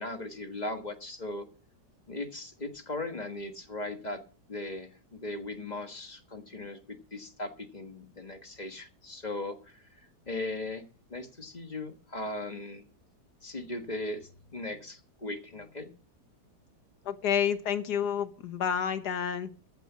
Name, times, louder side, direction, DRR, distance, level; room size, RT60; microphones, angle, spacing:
voice 1, 0.0-1.5 2.1-4.2 4.5-9.8 10.3-10.8 11.1-12.8 13.4-15.9, left 2 dB, 25° left, 6 dB, 1.3 m, -38 dB
voice 2, 17.0-19.5, left 8 dB, 65° left, 10 dB, 1.7 m, -29 dB
14.5 x 5.9 x 8.3 m, 0.38 s
omnidirectional pair, 1.9 m